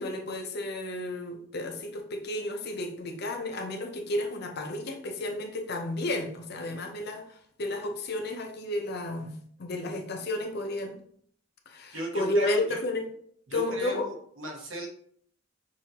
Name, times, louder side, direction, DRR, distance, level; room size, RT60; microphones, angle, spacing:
voice 1, 0.0-11.0 11.7-13.1 13.5-14.1, left 1 dB, 55° left, 0.7 m, -32 dB
voice 2, 11.9-12.8 13.5-14.9, right 1 dB, 85° right, 1.2 m, -37 dB
6.2 x 2.7 x 2.9 m
head